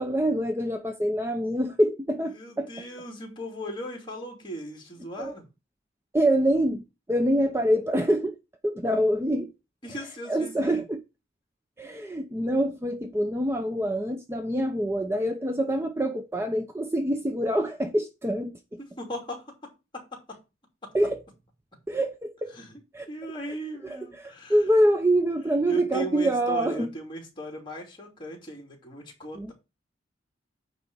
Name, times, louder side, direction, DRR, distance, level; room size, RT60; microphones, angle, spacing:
voice 1, 0.0-2.7 5.2-5.3 6.1-6.8 7.1-8.4 8.6-9.5 10.3-11.0 11.8-18.8 20.9-21.2 21.9-22.5 22.9-23.1 23.5-23.6 23.8-26.9 29.3-29.5, right 1 dB, 15° right, 0.6 m, -25 dB
voice 2, 2.3-5.4 9.8-10.8 18.8-20.4 20.8-20.9 22.5-22.8 23.1-24.6 25.7-29.5, right 1 dB, 25° left, 2.8 m, -38 dB
9.3 x 3.4 x 6.7 m
head